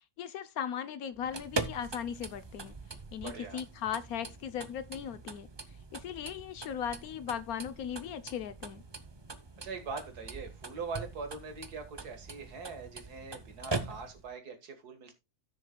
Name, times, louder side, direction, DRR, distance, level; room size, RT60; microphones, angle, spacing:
voice 1, 0.2-2.8 3.1-5.5 5.9-8.8, left 8 dB, 70° left, 1.2 m, -38 dB
sound 1, 1.1-14.3, right 3 dB, 30° right, 0.5 m, -42 dB
voice 2, 3.2-3.6 9.6-15.1, right 4 dB, 80° right, 2.1 m, -42 dB
16.0 x 6.6 x 2.2 m
omnidirectional pair, 1.6 m